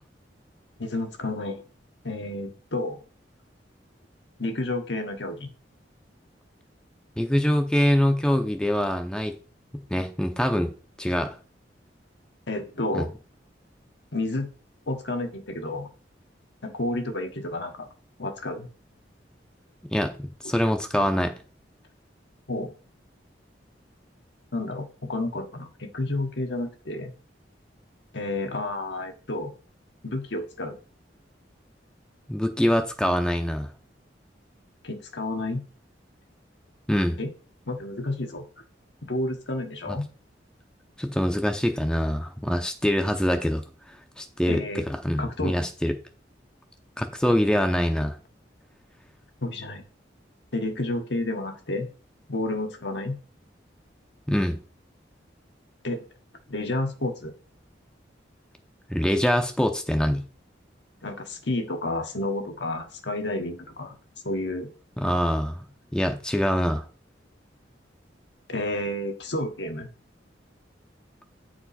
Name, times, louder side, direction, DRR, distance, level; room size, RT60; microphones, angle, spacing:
voice 1, 0.8-1.6 2.0-3.0 4.4-5.5 12.5-13.1 14.1-14.5 14.9-15.9 16.6-17.9 18.2-18.7 22.5-22.7 24.5-27.1 28.1-29.5 30.0-30.8 34.8-35.6 37.2-37.3 37.7-38.4 39.0-40.0 44.5-44.9 45.2-45.6 49.4-49.8 50.5-51.9 52.3-53.2 55.8-56.0 56.5-57.3 61.0-64.0 64.2-64.7 68.5-69.9, left 2 dB, 70° left, 1.2 m, -30 dB
voice 2, 7.2-9.4 9.7-10.7 11.0-11.4 12.9-13.1 19.9-21.3 32.3-33.7 36.9-37.2 39.9-40.0 41.0-43.6 44.2-46.0 47.0-48.1 54.3-54.6 58.9-60.2 65.0-65.6 65.9-66.9, equal, 5° left, 0.6 m, -24 dB
8.7 x 4.6 x 4.2 m
head